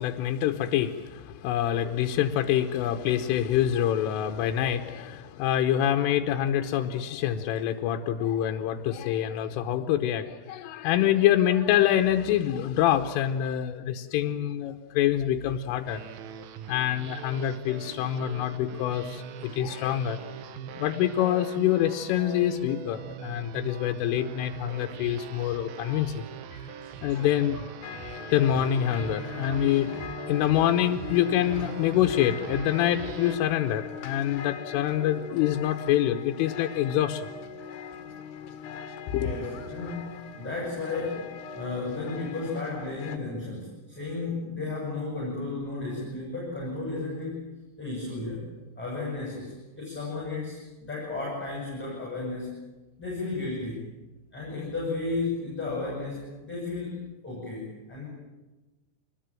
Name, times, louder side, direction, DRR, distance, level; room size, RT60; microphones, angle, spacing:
voice 1, 0.0-16.0 16.4-20.2 20.8-26.3 26.5-26.7 27.0-27.7 28.3-29.9 30.3-37.3 39.1-39.3, left 11 dB, 85° left, 5 dB, 3.5 m, -26 dB
sound 1, 15.9-33.4, right 8 dB, 65° right, 2.4 m, -41 dB
sound 2, 27.8-43.2, left 7 dB, 60° left, 3.4 m, -41 dB
voice 2, 39.1-40.1 40.4-41.3 41.5-47.5 47.8-48.5 48.8-52.5 53.0-53.8 54.3-58.1, left 3 dB, ahead, -3 dB, 7.5 m, -33 dB
26.0 x 20.5 x 9.1 m, 1.1 s
omnidirectional pair, 5.6 m